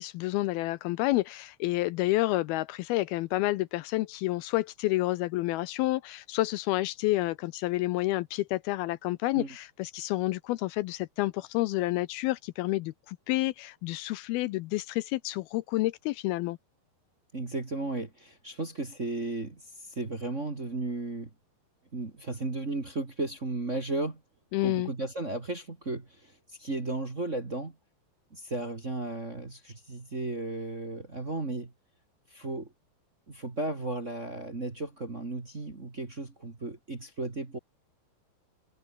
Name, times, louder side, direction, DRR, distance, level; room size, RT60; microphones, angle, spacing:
voice 1, 0.0-16.6 24.5-24.9, left 18 dB, 80° left, 2.4 m, -29 dB
voice 2, 17.3-21.3 21.9-24.2 24.6-27.7 28.3-31.7 32.3-32.7 33.3-37.6, right 2 dB, 25° right, 1.9 m, -35 dB
omnidirectional pair, 4.6 m